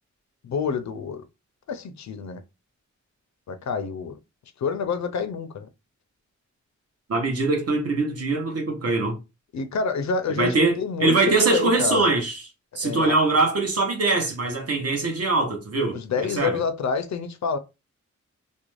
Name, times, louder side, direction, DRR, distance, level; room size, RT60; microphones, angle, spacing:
voice 1, 0.4-1.2 1.7-2.4 3.5-4.2 4.6-5.7 9.5-12.1 12.8-13.2 15.9-17.6, left 5 dB, 70° left, 0.4 m, -28 dB
voice 2, 7.1-9.2 10.4-10.7 11.0-12.4 12.8-16.0 16.4-16.6, right 3 dB, 55° right, 0.8 m, -22 dB
2.5 x 2.1 x 3.0 m
wide cardioid pair, 160°, 29 cm